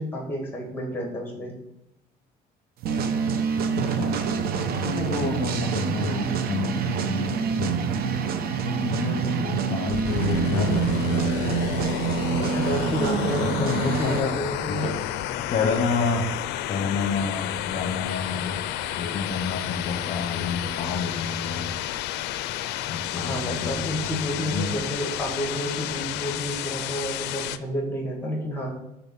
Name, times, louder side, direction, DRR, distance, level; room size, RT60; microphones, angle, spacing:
voice 1, 0.0-1.5 12.4-14.9 23.2-28.7, equal, 10° left, 2 dB, 2.2 m, -30 dB
sound 1, 2.8-14.2, right 6 dB, 65° right, 0.7 m, -26 dB
voice 2, 3.9-4.2 4.6-8.2 8.6-11.8 12.0-12.1 13.4-15.1 15.5-21.7 22.9-24.2 24.5-24.7, left 4 dB, 45° left, 3 dB, 0.9 m, -29 dB
sound 2, 9.9-27.6, left 12 dB, 85° left, 0.4 m, -31 dB
5.6 x 4.0 x 5.7 m, 0.88 s
cardioid pair, 110°, 17 cm